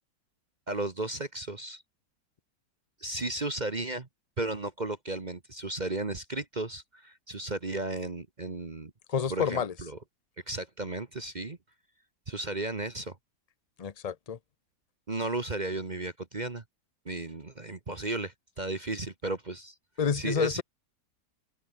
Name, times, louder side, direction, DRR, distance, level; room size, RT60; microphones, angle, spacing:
voice 1, 0.7-1.8 3.0-4.1 4.4-8.9 9.3-10.0 10.5-11.6 12.3-13.1 15.1-16.6 17.0-19.7 20.1-20.6, right 2 dB, 30° right, 1.3 m, -34 dB
voice 2, 9.1-9.7 13.8-14.4 20.0-20.6, left 7 dB, 35° left, 0.7 m, -29 dB
open air
omnidirectional pair, 1.8 m